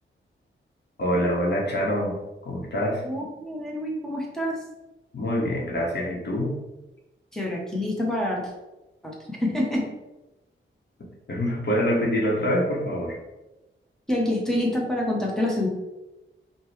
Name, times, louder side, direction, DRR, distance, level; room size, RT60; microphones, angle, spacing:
voice 1, 1.0-2.2 2.4-3.0 5.1-6.6 11.3-13.2, equal, 55° left, -2 dB, 1.0 m, -25 dB
voice 2, 3.0-4.6 7.3-8.5 9.0-9.9 14.1-15.7, left 1 dB, ahead, -3 dB, 0.9 m, -27 dB
5.0 x 2.2 x 3.2 m, 1.0 s
wide cardioid pair, 140°, 21 cm